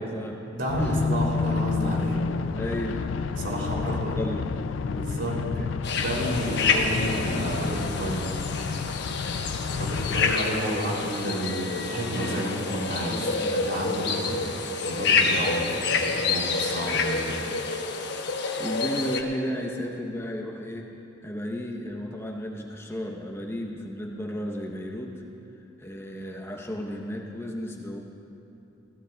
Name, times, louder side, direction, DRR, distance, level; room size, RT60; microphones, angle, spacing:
voice 1, 0.0-0.4 0.8-1.0 2.6-3.1 3.7-4.5 5.5-5.7 13.1-13.6 18.6-20.9 21.2-25.2 25.8-28.0, equal, 15° left, 0 dB, 0.8 m, -33 dB
voice 2, 0.5-2.2 3.4-4.2 4.9-5.4 6.0-8.3 9.7-13.3 13.6-14.4 14.8-17.4, equal, 70° right, -3 dB, 3.1 m, -30 dB
sound 1, 0.7-10.3, left 5 dB, 80° left, 0.4 m, -30 dB
sound 2, 5.8-19.2, left 4 dB, 60° left, 1.0 m, -28 dB
21.5 x 16.0 x 2.3 m, 2.9 s
head